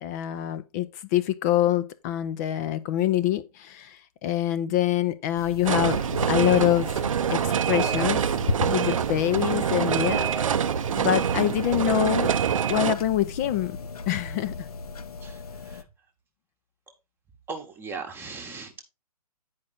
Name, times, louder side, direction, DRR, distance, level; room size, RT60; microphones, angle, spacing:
voice 1, 0.0-6.0 6.3-6.9 7.3-8.2 8.6-12.3 12.7-13.8 14.1-14.7, left 12 dB, 25° left, 0.6 m, -25 dB
sound 1, 5.4-15.8, left 3 dB, 65° left, 0.9 m, -37 dB
sound 2, 5.6-12.9, right 8 dB, 55° right, 0.7 m, -25 dB
voice 2, 15.2-15.8 17.5-18.8, right 4 dB, 10° right, 1.2 m, -38 dB
9.6 x 5.1 x 4.1 m
figure-of-eight pair, 130°, 20 cm